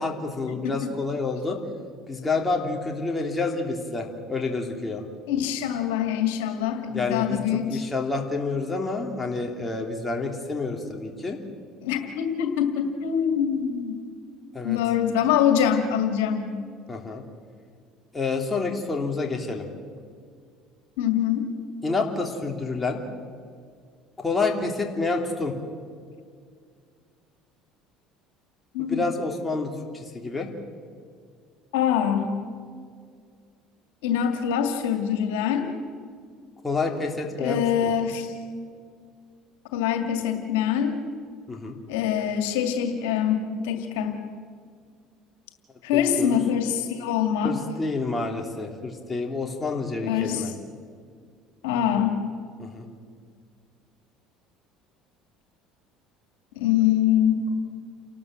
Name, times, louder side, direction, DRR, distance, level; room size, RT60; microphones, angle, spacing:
voice 1, 0.0-1.6 2.1-5.0 6.9-7.4 7.7-11.4 14.5-14.8 16.9-17.2 18.1-19.7 21.8-23.0 24.2-25.5 28.8-30.5 36.6-37.9 41.5-41.8 45.9-46.4 47.4-50.5 52.6-52.9, left 3 dB, 15° left, 1 dB, 3.0 m, -28 dB
voice 2, 5.3-7.8 11.8-14.0 14.6-16.5 21.0-21.5 28.7-29.0 31.7-32.3 34.0-35.7 37.4-38.3 39.7-41.0 41.9-44.2 45.8-47.6 50.0-50.5 51.6-52.1 56.6-57.4, left 9 dB, 85° left, 5 dB, 2.2 m, -24 dB
29.5 x 12.5 x 7.6 m, 2.1 s
supercardioid pair, 90°, 0 cm